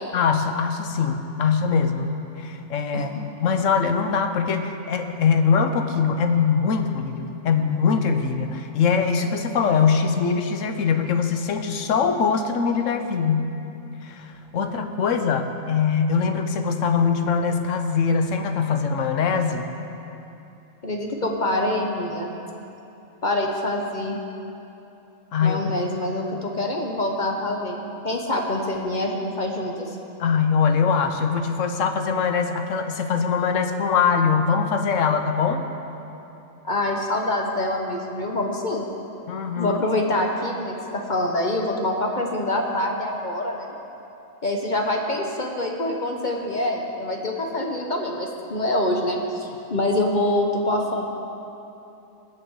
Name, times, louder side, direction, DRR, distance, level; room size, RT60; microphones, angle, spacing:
voice 1, 0.1-13.5 14.0-19.7 25.3-25.7 30.2-35.7 39.3-39.8, left 6 dB, 70° left, 6 dB, 1.2 m, -22 dB
voice 2, 20.8-22.3 23.2-24.2 25.4-30.0 36.6-38.9 39.6-43.7 44.4-51.0, left 1 dB, 40° left, 1 dB, 1.0 m, -25 dB
20.0 x 7.7 x 4.7 m, 2.9 s
omnidirectional pair, 1.4 m